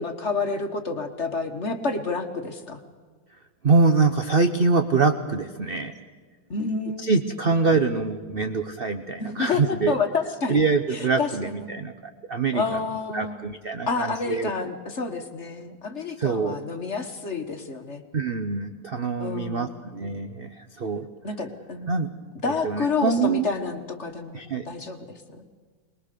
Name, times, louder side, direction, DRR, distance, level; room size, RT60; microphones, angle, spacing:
voice 1, 0.0-2.8 6.5-7.1 9.2-10.6 10.9-11.7 12.5-13.5 13.9-18.0 19.2-19.8 21.2-22.1 22.4-25.4, left 4 dB, 40° left, 6 dB, 1.4 m, -29 dB
voice 2, 3.6-6.1 7.0-10.0 10.5-12.8 13.1-14.5 16.2-16.6 18.1-21.1 21.9-22.1 22.5-23.5 24.3-24.7, right 4 dB, 50° right, 7 dB, 0.7 m, -24 dB
22.5 x 21.0 x 6.8 m, 1.5 s
omnidirectional pair, 2.1 m